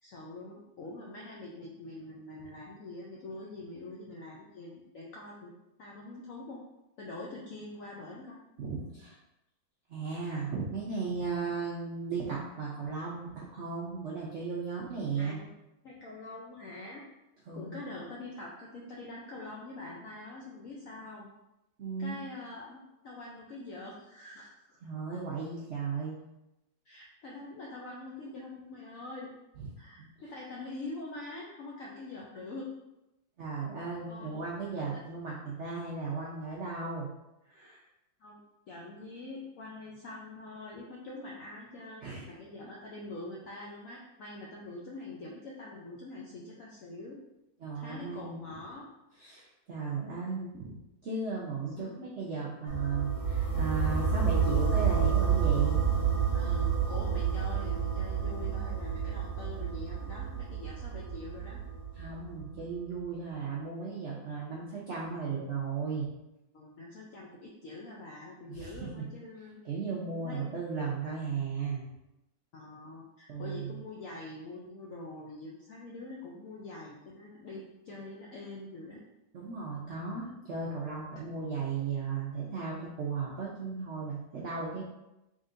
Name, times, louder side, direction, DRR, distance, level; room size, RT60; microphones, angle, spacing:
voice 1, 0.0-5.5 5.8-6.6 7.0-8.4 15.2-15.5 15.8-17.0 17.5-21.3 22.0-24.8 26.8-29.3 29.8-32.7 34.1-34.4 38.2-38.4 38.7-47.2 47.7-48.9 51.8-52.1 56.3-61.6 66.5-69.6 70.2-70.4 72.5-79.0 81.1-81.3, left 2 dB, 80° left, -3 dB, 0.7 m, -44 dB
voice 2, 8.6-9.2 9.9-15.4 17.5-17.8 21.8-22.2 24.8-26.1 29.6-29.7 33.4-37.1 37.5-37.8 42.0-42.2 47.6-48.4 49.2-50.8 51.0-55.8 61.9-66.1 68.5-69.0 69.6-71.8 73.3-73.7 79.3-84.8, right 5 dB, 75° right, -5 dB, 0.6 m, -36 dB
sound 1, 52.7-62.6, right 7 dB, 65° left, 1.8 m, -29 dB
3.8 x 3.6 x 2.5 m, 0.92 s
omnidirectional pair, 2.0 m